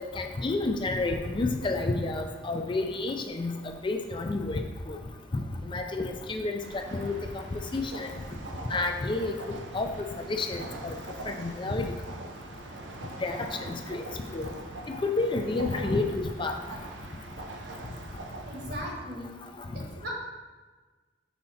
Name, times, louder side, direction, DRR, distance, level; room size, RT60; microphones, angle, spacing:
voice 1, 0.1-3.5 3.8-5.0 5.3-6.5 6.9-7.1 7.5-8.1 8.7-9.3 9.7-9.9 10.3-10.9 11.3-11.9 13.2-14.0 14.3-14.5 15.0-16.6, left 2 dB, 25° left, 4 dB, 0.4 m, -30 dB
sound 1, 6.6-18.7, right 2 dB, 90° right, 0.7 m, -43 dB
voice 2, 18.4-19.4 19.7-20.1, equal, 60° right, -2 dB, 1.5 m, -38 dB
5.6 x 4.2 x 4.2 m, 1.3 s
head